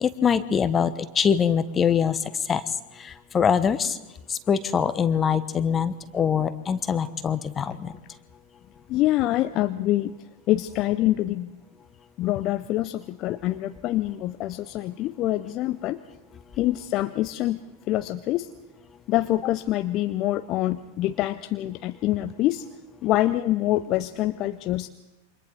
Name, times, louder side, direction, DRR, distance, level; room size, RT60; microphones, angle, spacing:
voice 1, 0.0-2.2 2.5-2.6 3.3-3.9 4.5-7.7, left 7 dB, 20° left, 13 dB, 1.1 m, -23 dB
voice 2, 8.9-10.1 10.5-11.6 12.2-16.0 16.6-17.6 17.9-18.5 19.1-22.7 23.0-24.9, left 15 dB, 35° left, 11 dB, 0.6 m, -25 dB
28.5 x 25.0 x 4.0 m, 1.0 s
figure-of-eight pair, 90°, 0 cm